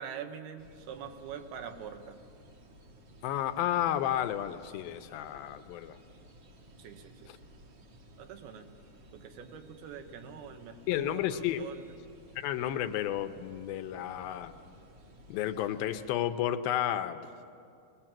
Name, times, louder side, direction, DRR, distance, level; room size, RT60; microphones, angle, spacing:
voice 1, 0.0-2.2 6.8-7.3 8.2-8.7 9.1-11.8, right 7 dB, 85° right, 7 dB, 3.1 m, -44 dB
sound 1, 0.6-16.1, equal, 55° right, 1.2 m, -56 dB
voice 2, 3.2-6.0 10.9-11.6 12.4-14.5 15.3-17.3, left 11 dB, 80° left, 9 dB, 2.4 m, -32 dB
22.0 x 19.5 x 7.4 m, 2.5 s
omnidirectional pair, 4.4 m